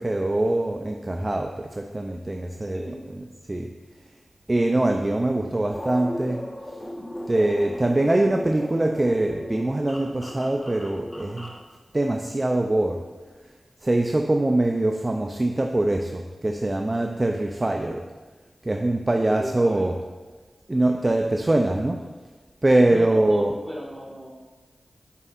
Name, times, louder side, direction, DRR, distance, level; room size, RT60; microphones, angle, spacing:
voice 1, 0.0-2.8 3.5-3.7 4.5-6.4 7.3-11.5 11.9-13.0 13.8-18.0 18.6-19.9 20.7-22.0 22.6-23.5, right 1 dB, 35° right, 3 dB, 0.4 m, -23 dB
sound 1, 5.7-11.6, equal, 30° left, 1.1 m, -36 dB
voice 2, 19.2-20.0 22.9-24.3, equal, 15° right, -4 dB, 1.7 m, -36 dB
8.2 x 5.3 x 2.5 m, 1.3 s
cardioid pair, 50°, 0 cm